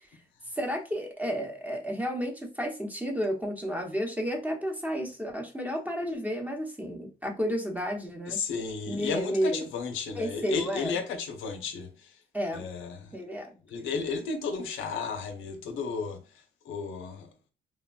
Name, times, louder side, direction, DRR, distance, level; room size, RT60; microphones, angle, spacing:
voice 1, 0.6-8.4 8.9-9.7 10.1-10.9 12.3-12.7 13.1-13.5, equal, 10° right, 0.8 m, -31 dB
voice 2, 8.3-12.2 12.5-13.2 13.7-16.2 16.6-17.3, left 5 dB, 85° left, 0.6 m, -33 dB
3.3 x 2.2 x 2.3 m
cardioid pair, 90°, 20 cm